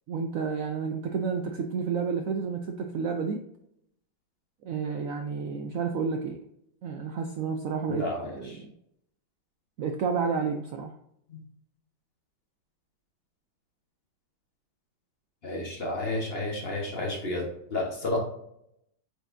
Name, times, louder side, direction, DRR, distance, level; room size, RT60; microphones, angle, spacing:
voice 1, 0.1-3.4 4.6-6.4 6.8-8.7 9.8-11.0, right 5 dB, 85° right, 5 dB, 0.7 m, -30 dB
voice 2, 7.9-8.6 11.3-11.4 15.4-18.2, left 2 dB, 35° left, -1 dB, 1.3 m, -31 dB
7.9 x 4.5 x 2.6 m, 0.76 s
omnidirectional pair, 2.1 m